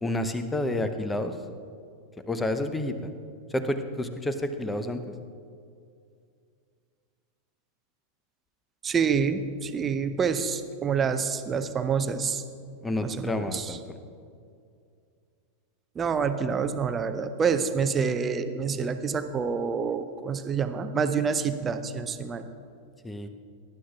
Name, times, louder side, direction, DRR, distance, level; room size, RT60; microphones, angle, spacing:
voice 1, 0.0-1.3 2.3-3.1 3.5-5.0 12.8-14.0 23.0-23.3, left 1 dB, 10° left, 9 dB, 0.8 m, -29 dB
voice 2, 8.8-12.4 13.0-13.8 16.0-22.4, right 6 dB, 20° right, 9 dB, 0.6 m, -27 dB
18.5 x 11.5 x 2.4 m, 2.3 s
figure-of-eight pair, 90°, 0 cm